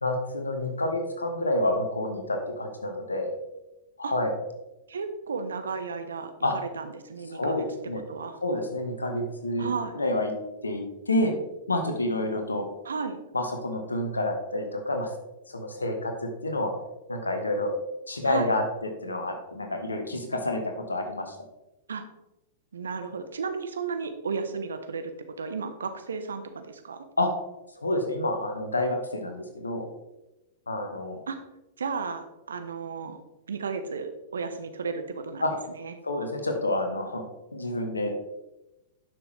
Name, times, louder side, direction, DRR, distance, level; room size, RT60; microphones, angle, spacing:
voice 1, 0.0-3.3 4.0-4.3 6.4-6.5 7.3-8.0 8.4-10.3 10.6-11.4 11.7-12.7 13.3-15.1 15.5-16.7 17.1-17.7 18.1-20.6 20.9-21.4 27.2-27.3 27.8-29.9 30.7-31.2 35.4-35.5 36.0-37.2 37.5-38.1, left 1 dB, 80° left, 4 dB, 1.4 m, -28 dB
voice 2, 4.9-7.6 8.1-8.4 9.6-9.9 12.8-13.2 18.2-18.5 21.9-22.1 22.7-25.1 25.4-27.0 31.3-31.4 31.8-33.2 33.5-35.9, right 5 dB, 70° right, 9 dB, 0.9 m, -34 dB
10.5 x 6.1 x 3.3 m, 0.98 s
figure-of-eight pair, 100°, 0 cm